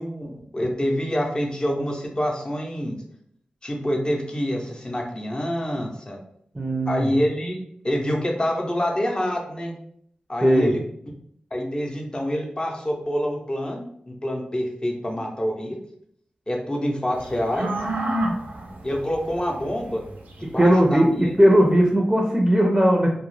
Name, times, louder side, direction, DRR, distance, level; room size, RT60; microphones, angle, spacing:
voice 1, 0.0-3.0 3.6-6.2 6.9-7.6 7.8-9.7 10.3-10.8 11.5-15.8 16.5-17.7 18.8-20.0 20.4-21.3, equal, 30° left, 1 dB, 0.6 m, -26 dB
voice 2, 6.5-7.1 10.4-10.7 20.4-23.1, equal, 20° right, 0 dB, 0.5 m, -18 dB
sound 1, 17.1-21.1, right 1 dB, 85° right, 0.5 m, -30 dB
2.3 x 2.1 x 3.1 m, 0.67 s
cardioid pair, 55°, 3 cm